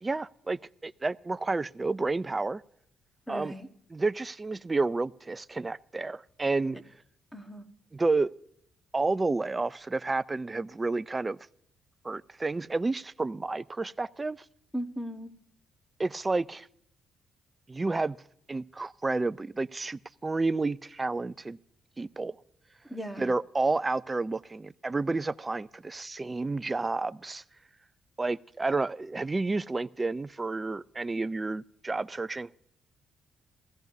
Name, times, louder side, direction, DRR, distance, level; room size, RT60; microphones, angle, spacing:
voice 1, 0.0-2.6 3.3-3.5 3.9-6.8 7.9-8.3 8.9-11.4 12.0-14.4 16.0-16.7 17.7-18.2 18.5-21.6 22.0-22.4 23.2-27.4 28.2-32.5, right 3 dB, 20° right, 0.4 m, -30 dB
voice 2, 3.3-3.7 7.3-7.7 14.7-15.3 22.9-23.3, equal, ahead, 1.4 m, -37 dB
17.0 x 15.0 x 2.7 m
cardioid pair, 90°, 0 cm